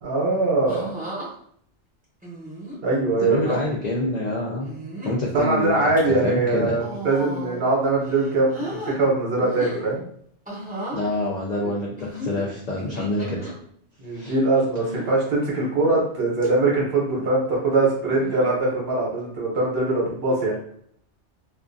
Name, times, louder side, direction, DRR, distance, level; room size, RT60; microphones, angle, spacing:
voice 1, 0.0-0.9 2.8-3.6 5.3-10.0 11.6-11.7 14.0-20.5, right 2 dB, 60° right, -3 dB, 1.0 m, -22 dB
sound 1, 0.7-1.3 2.2-2.8 3.4-3.6 4.6-5.2 5.7-6.0 6.7-7.7 8.0-9.0 9.4-9.9 10.4-11.0 12.0-13.5 14.8-15.2 15.8-16.1 16.4-16.5 18.1-18.5 19.6-19.9, equal, 10° right, 0.6 m, -35 dB
voice 2, 3.2-4.7 5.0-5.8 6.1-6.8 10.9-13.5 14.1-14.3, left 1 dB, 65° left, -3 dB, 0.4 m, -26 dB
2.4 x 2.2 x 2.5 m, 0.65 s
omnidirectional pair, 1.2 m